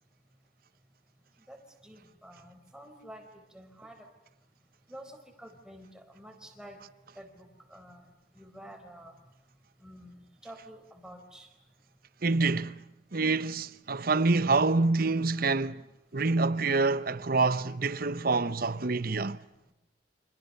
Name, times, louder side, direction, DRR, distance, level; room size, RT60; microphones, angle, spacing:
voice 1, 1.8-3.3 3.5-4.0 4.9-6.8 7.2-8.1 8.4-9.1 9.8-11.5, right 1 dB, 5° right, 4.2 m, -49 dB
voice 2, 12.2-12.8 13.1-15.8 16.1-19.4, right 3 dB, 50° right, 0.9 m, -26 dB
29.5 x 26.5 x 6.7 m
head